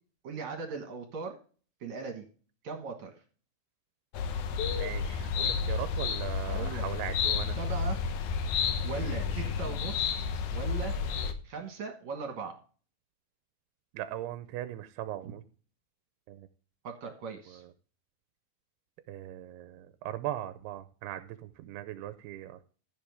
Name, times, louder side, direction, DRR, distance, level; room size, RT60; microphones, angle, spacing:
voice 1, 0.2-1.4 1.8-2.2 2.6-3.2 6.5-6.8 7.5-8.0 8.8-10.9 11.4-12.6 15.2-15.3 16.8-17.6, right 5 dB, 60° right, 3 dB, 2.3 m, -39 dB
sound 1, 4.1-11.3, left 6 dB, 75° left, 1.8 m, -31 dB
voice 2, 4.7-7.6 9.4-9.5 13.9-15.4 16.3-16.5 19.1-22.6, right 13 dB, 85° right, 11 dB, 2.6 m, -39 dB
14.5 x 6.7 x 3.5 m, 0.39 s
omnidirectional pair, 4.7 m